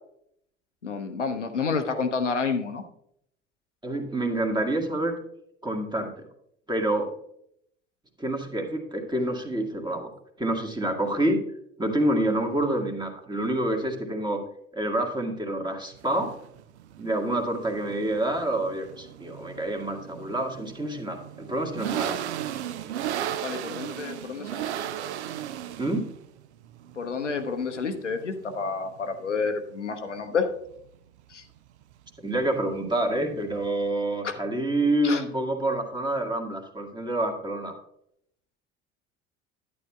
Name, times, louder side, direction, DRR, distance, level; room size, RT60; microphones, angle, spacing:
voice 1, 0.8-2.8 23.4-24.7 27.0-30.5 31.3-31.4 34.2-34.3 35.0-35.2, left 5 dB, 85° left, 6 dB, 0.7 m, -29 dB
voice 2, 3.8-5.2 5.6-6.1 6.7-7.1 8.2-10.1 10.4-11.4 11.8-14.4 14.7-16.3 17.0-22.3 25.8-26.0 32.2-37.8, right 1 dB, 10° right, 2 dB, 1.7 m, -27 dB
sound 1, 15.9-33.9, right 11 dB, 70° right, 0.5 m, -37 dB
11.0 x 9.3 x 2.3 m, 0.73 s
figure-of-eight pair, 60°, 35 cm